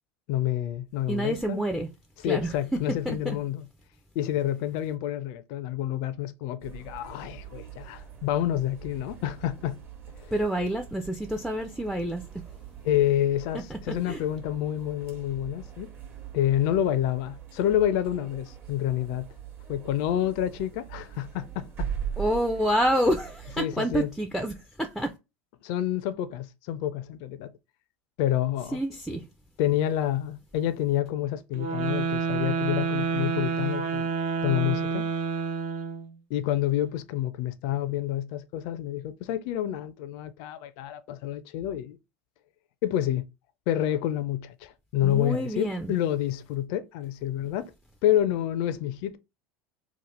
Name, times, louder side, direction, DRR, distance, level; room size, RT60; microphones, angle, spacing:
voice 1, 0.3-1.6 2.2-3.7 4.2-9.8 10.2-10.3 12.8-15.9 16.3-19.3 19.7-21.9 23.6-24.1 25.6-27.5 28.2-28.8 29.6-34.1 34.4-35.1 36.3-42.0 42.8-43.3 43.7-47.7 48.0-49.2, left 12 dB, 65° left, 0.4 m, -28 dB
voice 2, 1.1-1.9 2.3-3.4 10.3-12.2 13.7-13.8 14.1-14.2 22.2-25.1 28.7-29.3 45.0-45.9, right 1 dB, ahead, 0.4 m, -28 dB
sound 1, 6.6-23.7, right 8 dB, 35° right, 1.0 m, -42 dB
sound 2, 31.5-36.1, right 5 dB, 65° right, 0.7 m, -28 dB
2.9 x 2.1 x 3.0 m
hypercardioid pair, 90°, 7 cm